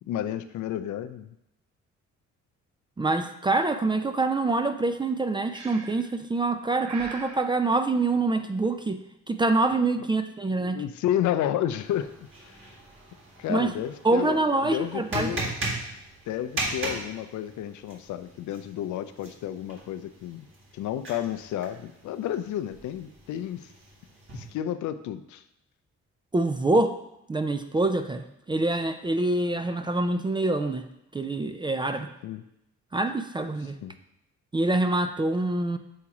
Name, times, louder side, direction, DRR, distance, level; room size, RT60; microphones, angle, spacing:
voice 1, 0.1-1.3 10.0-10.1 10.6-12.1 12.4-12.6 13.4-15.5 16.3-20.5 20.7-23.7 24.3-25.4 32.2-32.4 33.8-34.0, left 11 dB, 75° left, 12 dB, 0.5 m, -31 dB
voice 2, 3.0-9.0 9.3-10.8 13.5-13.7 14.0-15.3 26.3-27.0 27.3-30.8 31.1-32.1 32.9-33.8 34.5-35.8, right 2 dB, 15° right, 8 dB, 0.4 m, -25 dB
Breathing, 5.5-6.1 6.8-7.4, right 4 dB, 65° right, 1.0 m, -40 dB
sound 1, 11.8-24.5, right 2 dB, 45° right, 1.8 m, -39 dB
7.2 x 2.9 x 4.7 m, 0.82 s
cardioid pair, 90°, 30 cm